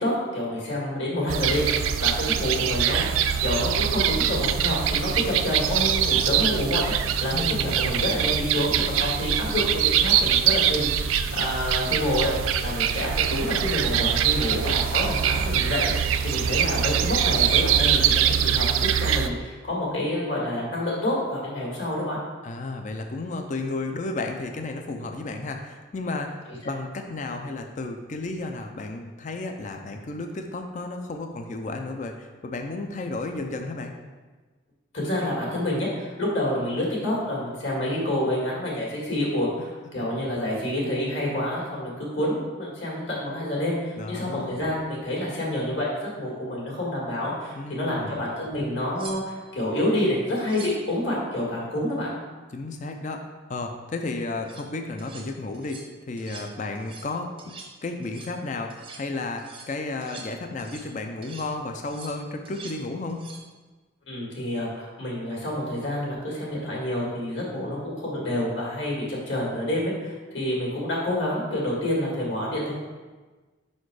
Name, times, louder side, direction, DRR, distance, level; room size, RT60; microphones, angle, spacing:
voice 1, 0.0-6.9 7.2-12.3 12.6-15.9 16.2-22.2 34.9-52.1 64.1-72.7, left 1 dB, 65° left, -4 dB, 2.0 m, -28 dB
sound 1, 1.3-19.3, right 9 dB, 85° right, 0.3 m, -23 dB
voice 2, 7.3-7.9 22.4-26.4 26.7-33.9 44.0-44.6 47.6-48.2 52.5-57.5 57.8-63.3, left 2 dB, 40° left, 5 dB, 0.4 m, -33 dB
sound 2, 48.4-48.5 48.9-49.5 50.4-50.9 54.3-54.7 55.0-55.3 55.5-55.9 56.2-56.5 56.7-57.1 57.4-57.8 58.0-58.4 58.7-59.1 59.4-61.0 61.2-61.5 61.9-62.8 63.1-63.5 66.0-66.2, right 4 dB, 25° right, 0.6 m, -44 dB
5.6 x 4.3 x 4.7 m, 1.3 s
head